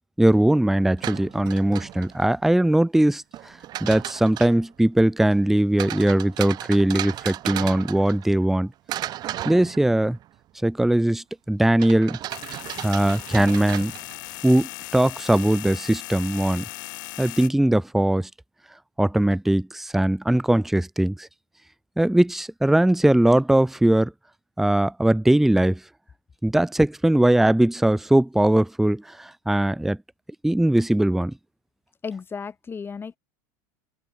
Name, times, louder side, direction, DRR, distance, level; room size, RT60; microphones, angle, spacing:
voice 1, 0.2-3.5 3.8-8.7 9.4-10.2 10.6-12.2 12.8-13.9 14.4-16.6 17.2-18.3 19.0-21.3 22.0-24.1 24.6-25.8 26.4-30.0 30.4-31.3, right 1 dB, 5° right, 0.6 m, -20 dB
sound 1, 0.8-2.3 3.3-4.7 5.8-8.6 8.9-10.3 11.8-14.3, right 13 dB, 40° right, 0.7 m, -35 dB
sound 2, 12.3-17.5, left 23 dB, 75° left, 3.9 m, -38 dB
voice 2, 32.0-33.2, left 5 dB, 20° left, 2.4 m, -34 dB
supercardioid pair, 110°, 10 cm